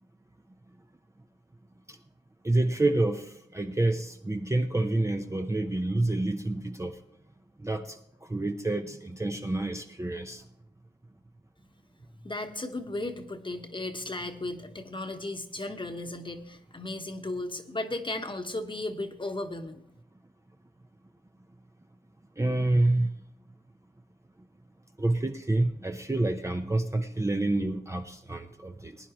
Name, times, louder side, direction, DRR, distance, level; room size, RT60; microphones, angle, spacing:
voice 1, 2.4-7.0 7.6-8.0 8.3-10.4 22.4-23.1 25.0-29.0, right 2 dB, 15° right, 5 dB, 0.7 m, -28 dB
voice 2, 12.2-19.8, left 2 dB, 25° left, 6 dB, 1.2 m, -35 dB
20.0 x 10.0 x 3.0 m, 0.72 s
wide cardioid pair, 95°, 18 cm